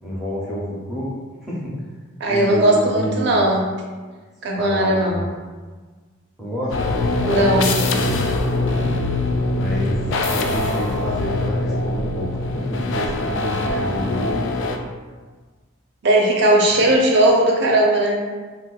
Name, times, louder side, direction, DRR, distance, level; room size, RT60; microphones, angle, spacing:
voice 1, 0.0-1.1 1.4-1.7 2.3-3.4 4.5-5.3 6.4-8.2 9.6-10.0 10.3-14.7 16.7-16.8, equal, ahead, -7 dB, 0.5 m, -28 dB
voice 2, 2.2-3.7 4.4-5.2 7.2-7.7 16.0-18.2, right 1 dB, 55° right, -1 dB, 0.5 m, -17 dB
sound 1, 6.7-14.8, left 2 dB, 65° left, 0.3 m, -23 dB
2.5 x 2.2 x 3.9 m, 1.4 s
head